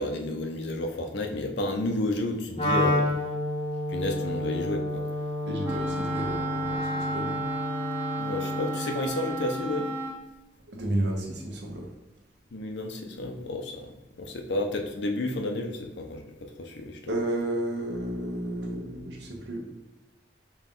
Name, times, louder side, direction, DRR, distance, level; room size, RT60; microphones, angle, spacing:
voice 1, 0.0-3.0 3.9-5.0 8.2-9.9 12.5-17.0, left 2 dB, 75° left, 4 dB, 0.6 m, -31 dB
Wind instrument woodwind instrument, 2.6-8.9, left 1 dB, 30° left, 0.6 m, -30 dB
voice 2, 2.6-3.0 5.5-7.5 10.7-11.9 17.1-19.6, right 1 dB, 75° right, 1 dB, 0.8 m, -32 dB
Wind instrument woodwind instrument 2, 5.6-10.2, right 2 dB, 15° right, 0.4 m, -33 dB
4.2 x 2.3 x 3.6 m, 1.0 s
head